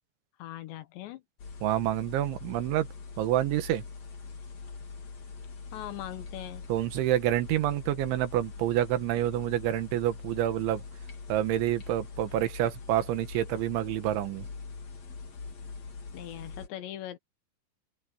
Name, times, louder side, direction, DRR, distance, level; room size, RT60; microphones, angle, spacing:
voice 1, 0.4-1.2 5.7-6.7 16.1-17.2, left 13 dB, 70° left, 3.3 m, -40 dB
sound 1, 1.4-16.7, left 4 dB, 45° left, 2.9 m, -43 dB
voice 2, 1.6-2.9 3.2-3.8 6.7-10.8 11.3-14.5, right 13 dB, 80° right, 3.6 m, -28 dB
open air
omnidirectional pair, 5.5 m